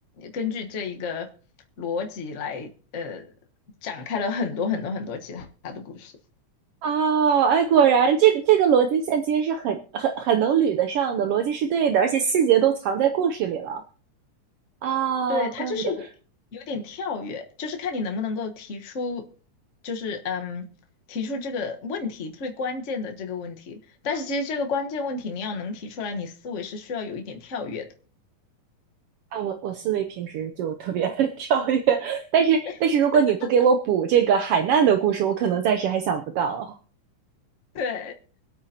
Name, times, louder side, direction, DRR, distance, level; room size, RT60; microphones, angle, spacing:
voice 1, 0.2-1.3 1.8-3.3 3.8-6.1 15.3-16.1 16.5-19.2 19.8-20.7 21.1-23.8 24.0-27.9 37.7-38.1, left 4 dB, 75° left, 0.6 m, -31 dB
voice 2, 6.8-13.8 14.8-15.8 29.3-36.7, right 7 dB, 80° right, 1.3 m, -22 dB
24.5 x 8.6 x 2.8 m
omnidirectional pair, 3.5 m